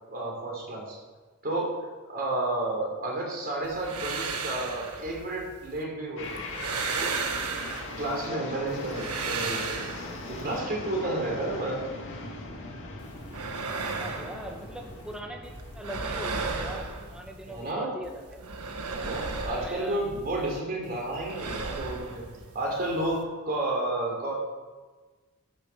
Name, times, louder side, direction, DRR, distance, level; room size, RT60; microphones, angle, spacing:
voice 1, 0.1-1.0 1.4-1.7 2.1-6.4 6.9-7.2 8.0-9.8 10.3-11.8 17.5-17.9 18.9-22.2 22.5-23.2 23.4-24.3, right 1 dB, 45° right, -1 dB, 3.8 m, -31 dB
sound 1, 3.6-5.8 6.2-8.3 8.7-10.6 13.0-15.2 15.4-17.7 18.0-20.6 20.8-23.2, right 4 dB, 85° right, 1.4 m, -35 dB
sound 2, 6.2-17.3, left 2 dB, 60° left, 2.0 m, -41 dB
voice 2, 13.8-18.4 19.6-20.0, right 1 dB, 5° right, 1 dB, 1.5 m, -41 dB
12.0 x 6.8 x 7.5 m, 1.3 s
head